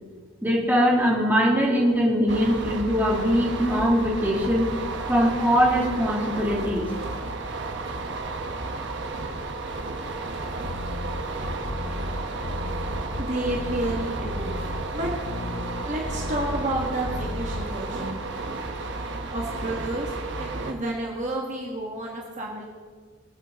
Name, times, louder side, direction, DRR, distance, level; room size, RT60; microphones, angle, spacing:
voice 1, 0.4-4.7 5.1-6.9, equal, 10° right, -3 dB, 2.4 m, -22 dB
sound 1, 2.3-20.7, right 3 dB, 60° right, 1.2 m, -33 dB
sound 2, 10.6-17.6, left 1 dB, 50° left, 0.9 m, -33 dB
voice 2, 13.2-14.6 14.9-15.1 15.8-18.2 18.8-20.1 20.4-22.6, right 1 dB, 35° right, -2 dB, 1.7 m, -31 dB
24.0 x 8.2 x 3.7 m, 1.5 s
head